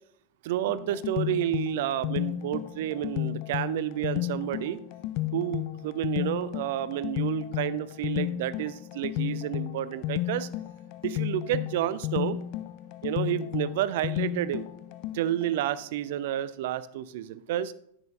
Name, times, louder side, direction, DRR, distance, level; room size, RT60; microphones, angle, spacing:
voice 1, 0.4-4.8 5.3-10.5 11.0-12.4 13.0-14.7 15.1-17.7, right 12 dB, 50° right, 16 dB, 0.5 m, -30 dB
sound 1, 0.7-15.5, left 15 dB, 45° left, 0.4 m, -33 dB
10.5 x 8.8 x 2.5 m, 0.69 s
figure-of-eight pair, 90°, 0 cm